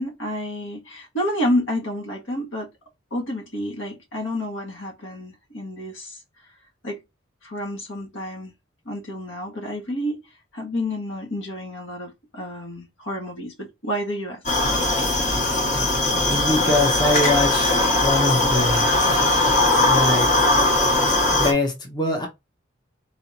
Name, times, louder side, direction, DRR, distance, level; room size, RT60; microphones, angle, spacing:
voice 1, 0.0-2.7 3.1-6.2 6.8-7.0 7.4-8.5 8.9-10.2 10.5-14.4 15.0-15.1, left 1 dB, 80° left, 1.8 m, -29 dB
sound 1, 14.5-21.5, left 2 dB, 40° left, 1.5 m, -20 dB
voice 2, 16.3-18.9 19.9-20.3 21.3-22.3, left 2 dB, 20° left, 0.9 m, -23 dB
4.0 x 3.7 x 2.9 m
head